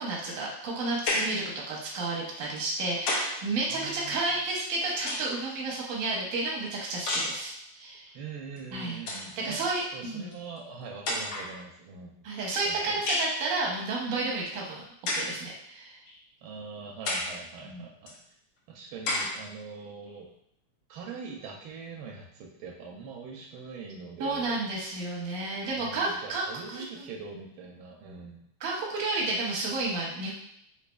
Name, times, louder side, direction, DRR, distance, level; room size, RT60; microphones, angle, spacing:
voice 1, 0.0-8.1 8.7-10.3 12.2-14.8 15.1-16.0 17.7-17.8 24.2-27.1 28.6-30.3, right 2 dB, 55° right, -3 dB, 1.0 m, -31 dB
sound 1, 1.1-1.5 2.6-3.4 4.6-5.5 7.1-7.5 8.6-8.7 8.9-9.3 10.3-10.4 11.1-11.6 13.1-13.4 15.1-15.4 16.1-16.2 17.1-17.4 18.1-18.2 19.1-19.4, left 2 dB, 70° left, 1.2 m, -31 dB
voice 2, 3.7-4.3 8.1-9.7 9.9-12.3 12.5-13.0 16.4-18.2 18.7-20.3 20.9-24.6 25.7-28.5, right 5 dB, 80° right, -1 dB, 1.4 m, -43 dB
4.0 x 2.9 x 2.2 m, 0.73 s
omnidirectional pair, 2.4 m